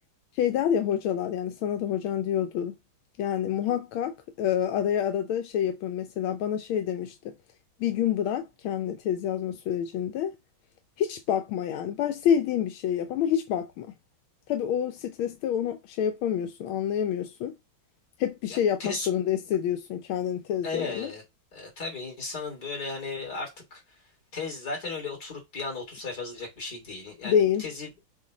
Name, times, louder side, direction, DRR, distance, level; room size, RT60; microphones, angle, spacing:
voice 1, 0.4-2.8 3.2-7.1 7.8-10.3 11.0-13.9 14.5-17.5 18.2-21.1 27.2-27.6, left 9 dB, 85° left, 1.5 m, -27 dB
voice 2, 18.5-19.1 20.6-21.2 21.5-23.8 24.3-27.9, left 4 dB, 45° left, 3.5 m, -35 dB
7.2 x 2.7 x 4.9 m
omnidirectional pair, 2.2 m